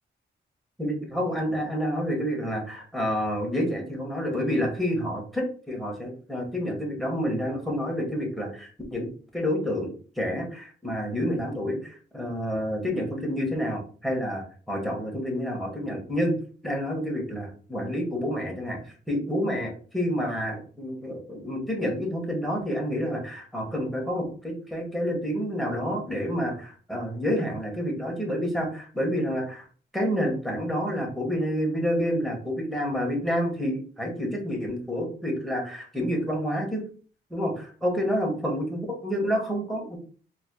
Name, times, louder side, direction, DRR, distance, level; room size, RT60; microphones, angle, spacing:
voice 1, 0.8-9.1 9.3-9.9 10.2-16.3 16.6-29.7 29.9-36.8 37.3-40.0, equal, ahead, -1 dB, 1.3 m, -29 dB
4.1 x 3.0 x 2.2 m, 0.40 s
cardioid pair, 115°, 19 cm